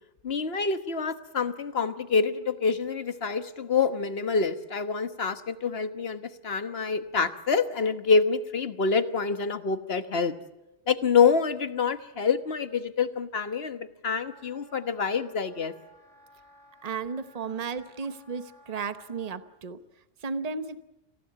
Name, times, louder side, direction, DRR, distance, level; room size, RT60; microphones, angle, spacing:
voice 1, 0.2-10.3 10.9-15.7, left 5 dB, 60° left, 10 dB, 1.5 m, -26 dB
Wind instrument woodwind instrument, 14.2-19.4, right 1 dB, 80° right, 7.8 m, -56 dB
voice 2, 16.8-19.8 20.2-20.9, right 5 dB, 35° right, 11 dB, 1.0 m, -34 dB
27.0 x 16.0 x 8.6 m, 0.98 s
omnidirectional pair, 1.2 m